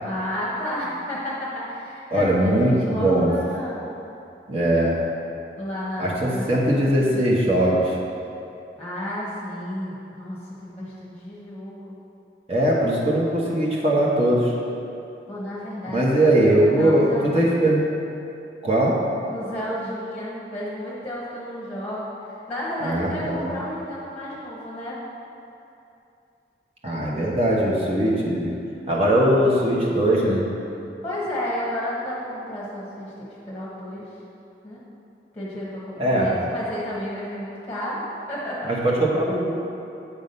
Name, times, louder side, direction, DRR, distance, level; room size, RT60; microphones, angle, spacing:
voice 1, 0.0-3.9 5.6-7.4 8.8-11.9 15.3-17.7 19.3-25.0 31.0-34.1 34.6-34.8 35.3-38.7, equal, 10° left, -7 dB, 1.2 m, -32 dB
voice 2, 2.1-3.3 4.5-4.9 6.0-8.0 12.5-14.5 15.9-17.8 18.6-19.0 22.8-23.5 26.8-28.5 28.9-30.4 36.0-36.3 38.7-39.6, right 1 dB, 35° right, -4 dB, 1.1 m, -20 dB
8.4 x 3.7 x 5.4 m, 2.7 s
head